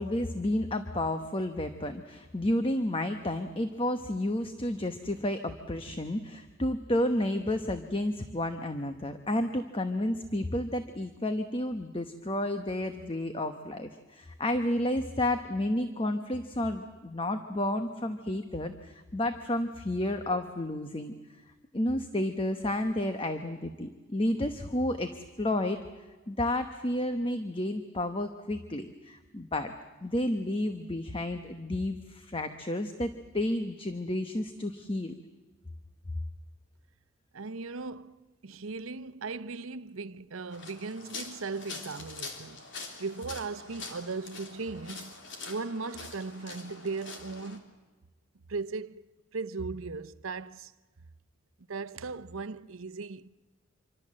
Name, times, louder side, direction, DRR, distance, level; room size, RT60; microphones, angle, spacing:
voice 1, 0.0-21.1 21.7-25.8 26.3-29.7 30.0-35.1, left 1 dB, 25° left, 1.0 m, -31 dB
voice 2, 37.3-38.2 38.4-42.6 43.0-47.7 48.5-49.0 49.3-50.7 51.7-53.3, right 4 dB, 85° right, 0.8 m, -37 dB
Walking on railroad ballast, 40.5-47.6, left 4 dB, 60° left, 3.3 m, -44 dB
26.5 x 24.5 x 7.6 m
head